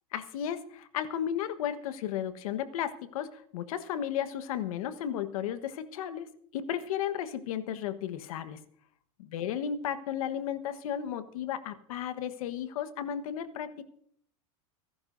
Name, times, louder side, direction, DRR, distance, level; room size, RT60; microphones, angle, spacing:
voice 1, 0.1-8.6 9.2-13.9, left 9 dB, 80° left, 11 dB, 1.3 m, -34 dB
26.5 x 11.5 x 2.7 m, 0.65 s
supercardioid pair, 120°, 18 cm